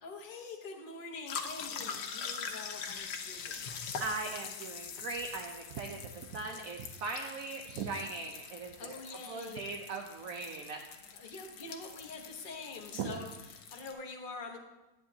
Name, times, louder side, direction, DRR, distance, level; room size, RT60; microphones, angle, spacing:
voice 1, 0.0-4.0 8.8-9.7 11.1-14.6, left 3 dB, 35° left, 1 dB, 1.1 m, -45 dB
sound 1, 1.3-13.9, left 6 dB, 90° left, 1.4 m, -43 dB
voice 2, 4.0-8.7 9.3-10.8 12.9-13.2, right 4 dB, 65° right, 2 dB, 1.0 m, -39 dB
11.0 x 8.6 x 2.7 m, 1.0 s
omnidirectional pair, 1.7 m